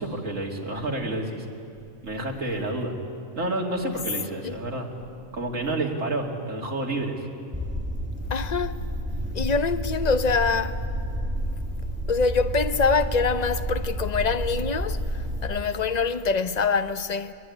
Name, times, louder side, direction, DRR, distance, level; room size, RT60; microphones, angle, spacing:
voice 1, 0.0-1.4 2.0-2.9 3.4-4.9 5.3-7.2, right 2 dB, 80° right, 3.0 m, -29 dB
sound 1, 7.5-15.5, equal, 10° right, 1.8 m, -30 dB
voice 2, 8.3-8.8 9.3-10.8 12.1-17.3, left 4 dB, 40° left, 0.8 m, -25 dB
22.0 x 22.0 x 9.8 m
omnidirectional pair, 1.3 m